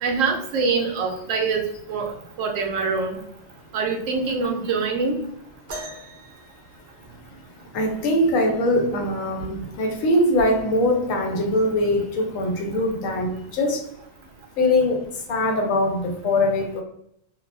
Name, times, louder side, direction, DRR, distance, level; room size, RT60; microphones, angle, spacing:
voice 1, 0.0-1.6 1.9-2.1 2.4-3.2 3.7-5.2, right 4 dB, 75° right, 3 dB, 1.0 m, -24 dB
sound 1, 5.7-7.6 9.2-9.3 10.1-10.4 11.3-11.4, right 1 dB, 60° right, 0.8 m, -40 dB
voice 2, 7.7-13.8 14.6-16.8, left 1 dB, 85° left, 3 dB, 1.1 m, -22 dB
3.3 x 2.2 x 2.4 m, 0.73 s
omnidirectional pair, 1.4 m